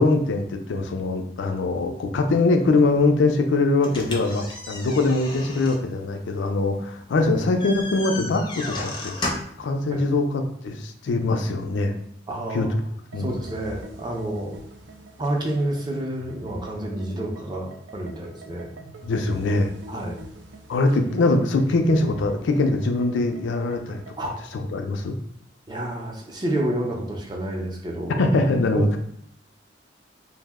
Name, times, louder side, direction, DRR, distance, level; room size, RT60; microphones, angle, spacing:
voice 1, 0.0-9.1 9.6-12.0 12.5-12.8 13.1-13.3 19.0-19.7 20.7-24.0 24.7-25.2 28.2-29.0, left 2 dB, 80° left, 5 dB, 0.4 m, -22 dB
sound 1, 3.8-9.7, left 2 dB, 25° left, 0.5 m, -34 dB
voice 2, 12.3-12.7 13.2-14.5 15.2-18.7 19.9-20.2 24.2-24.4 25.7-28.2 28.7-29.0, right 1 dB, 25° right, -1 dB, 0.5 m, -29 dB
sound 2, 13.1-24.4, right 1 dB, 85° right, 0.4 m, -45 dB
2.7 x 2.0 x 3.4 m, 0.69 s
head